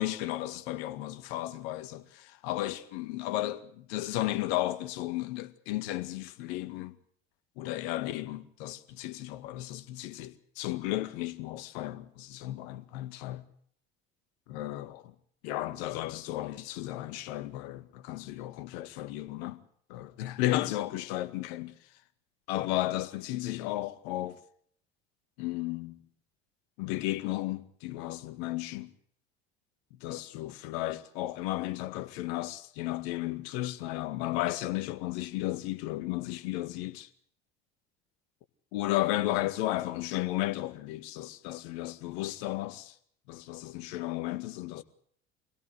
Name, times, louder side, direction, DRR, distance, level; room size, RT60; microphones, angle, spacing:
voice 1, 0.0-7.0 7.6-13.4 14.5-15.1 15.4-19.6 19.9-21.7 22.5-24.4 25.4-26.0 26.8-28.9 30.0-37.1 38.7-42.9 43.3-44.8, left 16 dB, 70° left, 2.0 m, -34 dB
25.0 x 17.0 x 8.1 m
hypercardioid pair, 70°, 33 cm